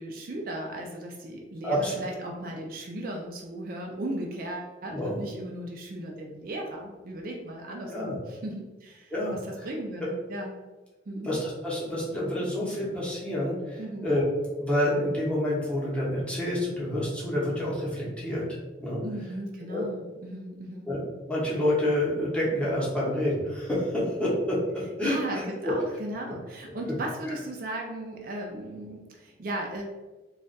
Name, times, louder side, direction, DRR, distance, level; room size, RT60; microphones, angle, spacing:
voice 1, 0.0-9.1 9.5-10.5 11.1-11.3 13.8-14.1 19.0-20.9 25.0-29.8, right 1 dB, 50° right, 0 dB, 0.4 m, -36 dB
voice 2, 4.8-5.2 7.9-8.2 9.1-9.7 10.0-10.1 11.2-14.3 14.6-18.4 18.8-19.0 19.7-19.8 20.9-21.0 21.3-25.4, left 1 dB, 5° left, -7 dB, 0.8 m, -28 dB
2.4 x 2.2 x 3.9 m, 1.2 s
head